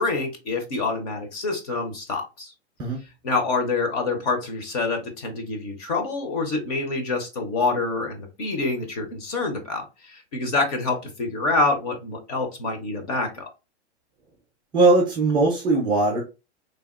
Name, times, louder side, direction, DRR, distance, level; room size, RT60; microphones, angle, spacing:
voice 1, 0.0-2.5 3.2-13.5, left 3 dB, 35° left, 4 dB, 0.7 m, -26 dB
voice 2, 14.7-16.2, right 2 dB, 15° right, -1 dB, 0.5 m, -19 dB
3.3 x 2.3 x 2.3 m, 0.28 s
hypercardioid pair, 160°, 34 cm